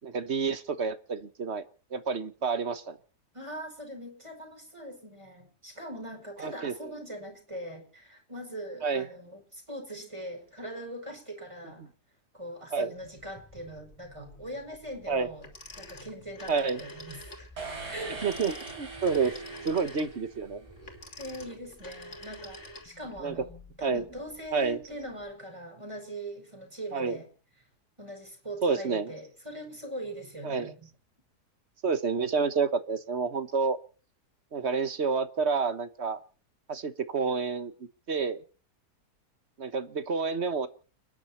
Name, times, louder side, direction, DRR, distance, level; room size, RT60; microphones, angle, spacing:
voice 1, 0.0-1.6 1.9-3.0 6.4-6.9 8.8-9.0 12.7-12.9 15.1-15.3 16.5-16.8 18.2-19.3 19.6-20.6 23.2-23.3 23.8-24.0 24.5-24.8 26.9-27.2 28.6-29.1 30.4-30.7 31.8-33.8 34.5-36.2 36.7-37.7 38.1-38.4 39.6-40.7, right 5 dB, 45° right, 12 dB, 1.3 m, -29 dB
voice 2, 3.3-11.9 12.3-15.5 15.8-17.6 17.9-18.2 19.2-19.4 20.9-23.5 23.8-27.3 28.0-30.9, equal, 15° right, 3 dB, 5.4 m, -41 dB
sound 1, 13.0-25.3, left 1 dB, 10° left, 2.9 m, -56 dB
Telephone, 15.4-17.5 18.1-23.2, left 1 dB, 45° left, 3.1 m, -46 dB
sound 2, 17.6-20.7, right 3 dB, 90° right, 4.5 m, -41 dB
30.0 x 10.5 x 4.3 m, 0.39 s
omnidirectional pair, 1.7 m